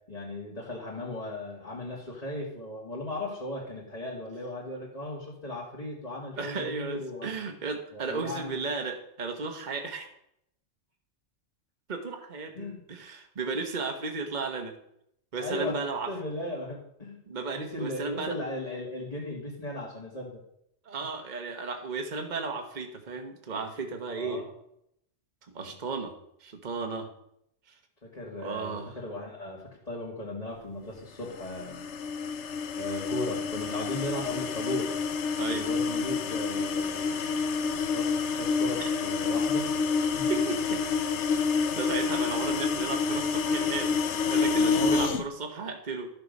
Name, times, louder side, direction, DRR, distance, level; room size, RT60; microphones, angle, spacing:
voice 1, 0.1-7.3 7.9-8.6 12.5-12.8 15.4-15.8 16.1-17.2 17.5-20.4 24.1-24.5 28.0-31.9 32.8-34.9 35.5-37.3 37.7-39.7 40.1-40.3 44.5-45.1, left 1 dB, 30° left, -5 dB, 2.3 m, -36 dB
voice 2, 6.4-10.1 11.9-14.7 15.3-16.1 17.3-18.4 20.8-24.4 25.5-26.1 26.4-27.1 28.4-29.0 35.3-35.7 40.3-40.8 41.7-46.1, right 4 dB, 40° right, 5 dB, 1.3 m, -34 dB
sound 1, 31.3-45.2, left 5 dB, 70° left, 1.1 m, -28 dB
13.0 x 6.9 x 5.3 m, 0.75 s
omnidirectional pair, 1.2 m